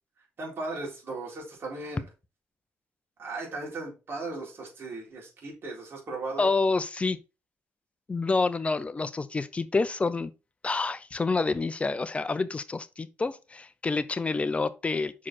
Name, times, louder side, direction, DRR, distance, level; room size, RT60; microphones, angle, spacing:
voice 1, 0.4-2.0 3.2-6.5, right 2 dB, 50° right, 4.0 m, -37 dB
voice 2, 6.4-7.2 8.1-10.3 10.6-15.3, left 3 dB, 25° left, 0.6 m, -28 dB
6.0 x 4.8 x 4.3 m
cardioid pair, 100°, 5 cm